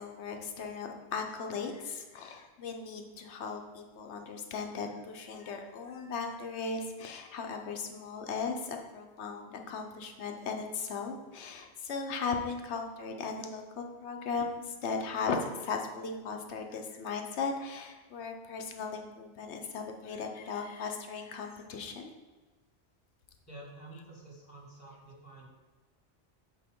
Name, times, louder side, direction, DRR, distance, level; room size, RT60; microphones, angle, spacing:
voice 1, 0.0-22.1, left 5 dB, 80° left, 4 dB, 1.1 m, -37 dB
voice 2, 23.5-25.5, right 1 dB, 15° left, -3 dB, 1.8 m, -49 dB
8.3 x 4.7 x 3.6 m, 1.3 s
omnidirectional pair, 1.1 m